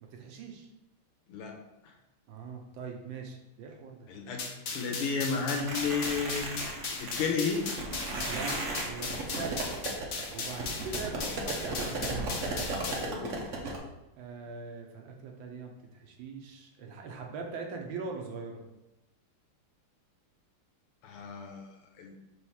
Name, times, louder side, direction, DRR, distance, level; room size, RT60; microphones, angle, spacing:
voice 1, 0.0-0.7 2.3-4.1 8.3-8.5 8.9-9.6 10.3-12.0 14.2-18.6, right 4 dB, 70° right, 2 dB, 1.4 m, -41 dB
voice 2, 1.3-1.6 1.8-1.9 4.1-6.6 6.9-7.6 11.1-11.3 12.8-13.4 21.0-22.1, left 5 dB, 85° left, 1 dB, 2.0 m, -33 dB
sound 1, 4.4-13.1, left 4 dB, 60° left, 0.8 m, -38 dB
sound 2, 5.5-13.8, right 2 dB, 55° right, 0.9 m, -36 dB
4.7 x 3.6 x 5.6 m, 0.94 s
omnidirectional pair, 2.4 m